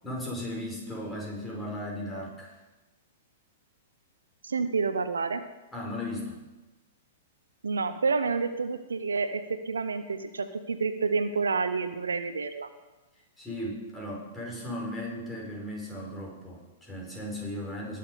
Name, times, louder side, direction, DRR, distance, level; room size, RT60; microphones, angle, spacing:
voice 1, 0.0-2.6 5.7-6.4 13.4-18.0, left 1 dB, 10° left, -2 dB, 4.7 m, -36 dB
voice 2, 4.4-5.4 7.6-12.7, right 4 dB, 80° right, 10 dB, 0.8 m, -29 dB
20.5 x 6.9 x 5.2 m, 1.1 s
figure-of-eight pair, 105°, 0 cm